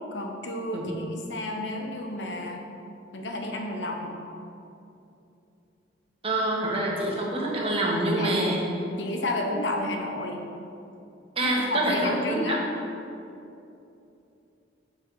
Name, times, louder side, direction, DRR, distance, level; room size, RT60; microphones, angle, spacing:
voice 1, 0.1-2.6 3.1-4.2 8.2-8.4 8.9-10.4 11.4-12.6, left 1 dB, 75° left, 2 dB, 1.0 m, -31 dB
voice 2, 6.2-8.6 11.4-12.6, right 1 dB, 30° right, -3 dB, 1.5 m, -26 dB
7.3 x 6.3 x 4.8 m, 2.8 s
head